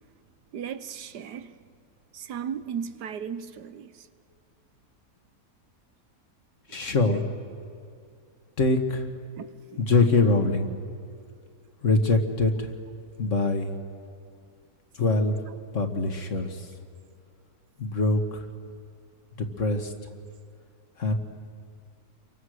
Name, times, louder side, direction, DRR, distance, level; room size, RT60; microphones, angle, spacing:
voice 1, 0.5-1.6 2.1-3.9 9.4-9.5 9.7-9.8, right 7 dB, 85° right, 1.6 m, -35 dB
voice 2, 6.7-7.3 8.6-9.1 9.8-10.7 11.8-12.7 13.2-13.7 15.0-15.4 15.7-16.7 17.8-18.5 19.4-19.9 21.0-21.1, left 3 dB, 50° left, 2.0 m, -23 dB
30.0 x 23.5 x 6.5 m
omnidirectional pair, 1.7 m